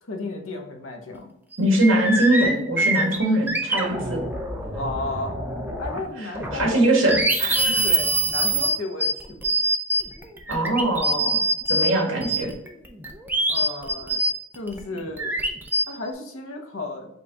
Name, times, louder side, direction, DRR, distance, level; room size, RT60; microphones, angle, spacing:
voice 1, 0.0-1.3 4.7-5.4 5.8-6.8 7.6-9.5 13.5-14.2 14.5-15.4 15.9-17.1, left 2 dB, 80° left, 3 dB, 0.8 m, -33 dB
sound 1, 1.1-1.2 1.5-6.1 6.3-11.9 12.2-15.8, right 1 dB, 10° right, 0.4 m, -24 dB
voice 2, 1.6-4.2 6.5-7.9 10.5-12.5, right 1 dB, 65° right, -1 dB, 1.5 m, -22 dB
5.2 x 2.3 x 3.9 m, 0.76 s
head